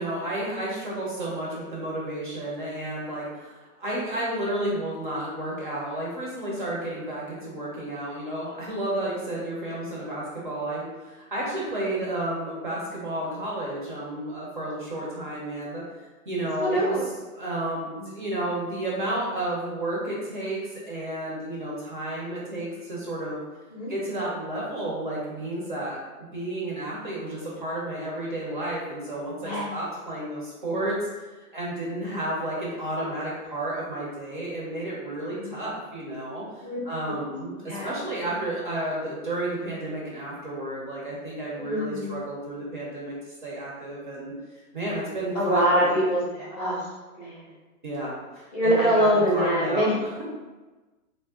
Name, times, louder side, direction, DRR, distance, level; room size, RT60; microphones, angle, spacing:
voice 1, 0.0-15.8 16.3-17.0 17.3-23.4 23.9-31.0 31.3-36.4 36.8-44.3 44.7-45.9 47.8-50.2, right 1 dB, 35° right, -5 dB, 0.5 m, -32 dB
voice 2, 16.6-17.0 23.7-23.9 29.4-29.8 35.4-35.5 36.6-36.8 37.7-37.9 41.5-42.1 45.3-46.9 47.2-47.4 48.5-50.0, equal, 30° left, -5 dB, 0.6 m, -24 dB
2.4 x 2.0 x 3.6 m, 1.2 s
hypercardioid pair, 155°, 44 cm